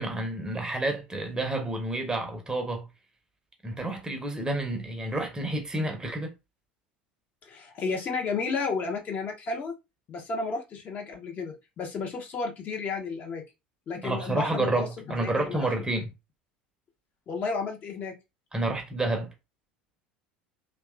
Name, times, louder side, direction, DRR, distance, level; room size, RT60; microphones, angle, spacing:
voice 1, 0.0-2.9 3.6-6.3 14.0-16.1 18.5-19.3, right 2 dB, 15° right, 0.6 m, -29 dB
voice 2, 7.4-9.7 10.1-13.4 13.9-15.6 17.3-18.1, left 4 dB, 35° left, 0.6 m, -32 dB
2.9 x 2.2 x 2.3 m
figure-of-eight pair, 70°, 5 cm